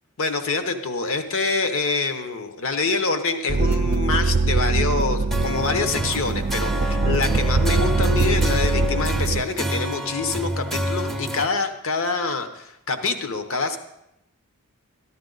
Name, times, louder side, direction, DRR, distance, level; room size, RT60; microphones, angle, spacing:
voice 1, 0.2-13.8, left 4 dB, 60° left, 8 dB, 0.9 m, -26 dB
sound 1, 3.5-9.4, right 3 dB, 45° right, 0.5 m, -22 dB
sound 2, 5.3-11.5, equal, ahead, 0.7 m, -29 dB
13.5 x 11.0 x 3.9 m, 0.84 s
head